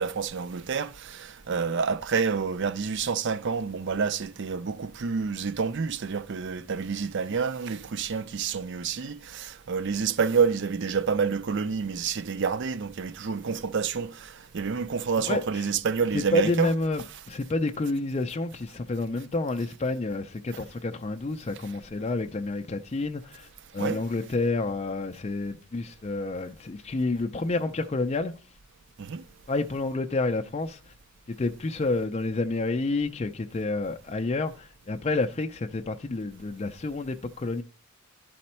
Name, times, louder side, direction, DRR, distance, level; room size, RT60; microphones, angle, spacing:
voice 1, 0.0-16.7 23.8-24.0 29.0-29.2, right 5 dB, 55° right, 0.5 m, -28 dB
voice 2, 15.2-15.7 16.1-28.3 29.5-30.8 31.3-37.6, left 3 dB, 30° left, 0.4 m, -29 dB
11.5 x 4.2 x 4.3 m
head